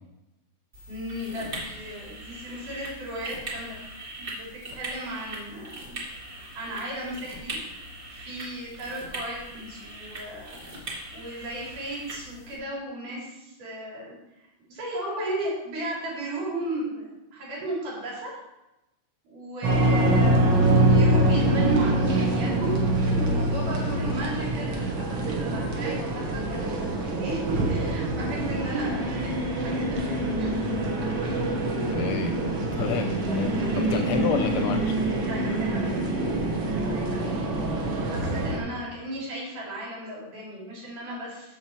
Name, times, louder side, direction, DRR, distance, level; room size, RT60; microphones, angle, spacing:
sound 1, 0.7-12.6, right 1 dB, 35° right, 2.2 m, -40 dB
voice 1, 0.9-3.8 4.2-7.6 8.1-14.1 14.7-18.4 19.2-30.6 31.2-31.4 33.4-34.0 35.3-36.0 36.6-37.4 37.9-41.6, right 1 dB, 90° right, -5 dB, 4.7 m, -35 dB
sound 2, 19.6-38.6, right 1 dB, 55° right, 1.5 m, -25 dB
voice 2, 31.6-32.4 32.7-33.5 33.9-35.0, left 8 dB, 75° left, 6 dB, 1.7 m, -29 dB
8.5 x 7.0 x 4.6 m, 0.95 s
omnidirectional pair, 3.6 m